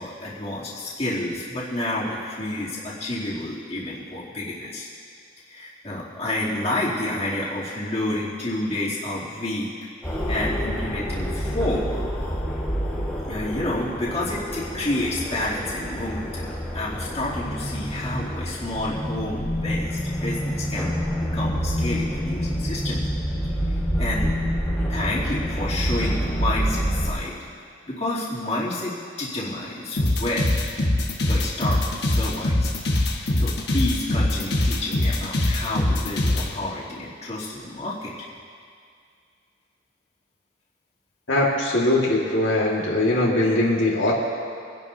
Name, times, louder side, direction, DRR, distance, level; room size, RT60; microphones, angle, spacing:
voice 1, 0.0-4.9 5.5-9.7 10.3-11.9 13.2-20.9 21.3-23.1 24.0-24.3 24.9-27.5 27.9-30.7 31.3-32.7 33.2-38.1, left 1 dB, 35° left, -9 dB, 3.0 m, -29 dB
sound 1, 10.0-27.1, equal, 10° left, 1.6 m, -27 dB
sound 2, 30.0-36.5, left 1 dB, 55° left, 1.4 m, -22 dB
voice 2, 41.3-44.1, left 1 dB, 80° left, -5 dB, 2.0 m, -21 dB
26.0 x 11.0 x 2.8 m, 2.2 s
head